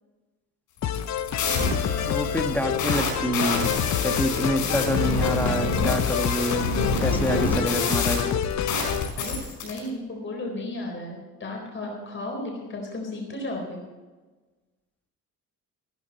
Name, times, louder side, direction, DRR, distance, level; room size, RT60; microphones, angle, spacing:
sound 1, 0.8-9.8, left 3 dB, 90° left, 5.1 m, -27 dB
sound 2, 0.8-9.1, left 10 dB, 50° left, 0.6 m, -28 dB
voice 1, 2.0-3.6 4.0-6.6 7.0-8.3, equal, 5° left, 6 dB, 1.4 m, -27 dB
voice 2, 7.2-7.6 9.2-9.4 9.6-13.8, left 1 dB, 35° left, 0 dB, 4.1 m, -34 dB
14.5 x 13.5 x 4.1 m, 1.2 s
cardioid pair, 100°, 35 cm